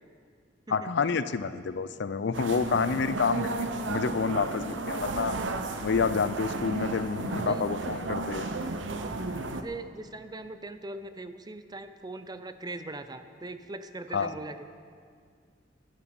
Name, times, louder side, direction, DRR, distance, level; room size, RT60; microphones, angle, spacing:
voice 1, 0.7-3.5 3.9-5.3 5.8-8.5 14.1-14.3, left 5 dB, 65° left, 13 dB, 0.5 m, -28 dB
sound 1, 2.3-9.6, right 3 dB, 80° right, 0.8 m, -33 dB
voice 2, 7.3-8.0 9.0-14.7, right 2 dB, 20° right, 11 dB, 0.5 m, -41 dB
11.5 x 9.9 x 7.7 m, 2.1 s
head